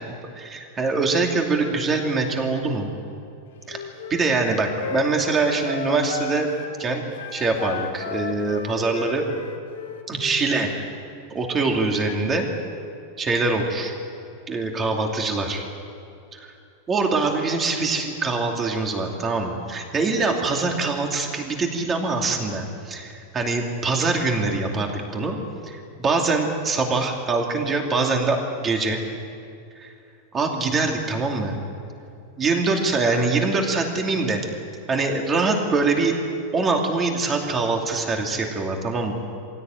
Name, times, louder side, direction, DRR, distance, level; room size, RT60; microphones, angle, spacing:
voice 1, 0.0-2.9 3.7-3.8 4.1-6.5 6.8-7.0 7.3-9.2 10.1-10.7 11.3-12.5 13.2-13.9 14.5-15.6 16.3-16.5 16.9-25.4 25.6-29.0 29.8-29.9 30.3-31.5 32.4-34.5 34.9-36.2 36.5-39.1, right 3 dB, 20° right, 2 dB, 2.8 m, -23 dB
Wind instrument woodwind instrument, 3.7-6.7 7.1-10.5, left 8 dB, 85° left, 2.1 m, -35 dB
23.5 x 16.5 x 9.3 m, 2.6 s
supercardioid pair, 160°, 0 cm